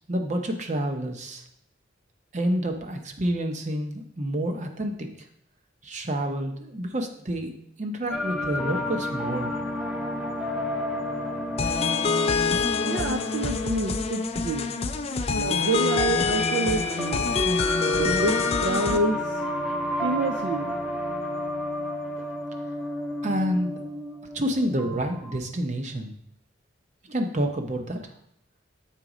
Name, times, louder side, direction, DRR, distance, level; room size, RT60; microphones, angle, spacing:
voice 1, 0.1-1.4 2.3-5.1 5.8-9.6 23.2-23.9 24.3-26.1 27.1-28.0, right 1 dB, 35° right, 5 dB, 0.7 m, -28 dB
sound 1, 8.1-25.4, left 1 dB, 5° right, 0.7 m, -32 dB
sound 2, 11.6-19.0, left 4 dB, 30° left, 0.4 m, -25 dB
voice 2, 12.9-14.7 15.3-17.4 17.9-19.4 20.0-20.7, right 2 dB, 60° right, 6 dB, 0.4 m, -28 dB
7.4 x 4.0 x 4.9 m, 0.72 s
head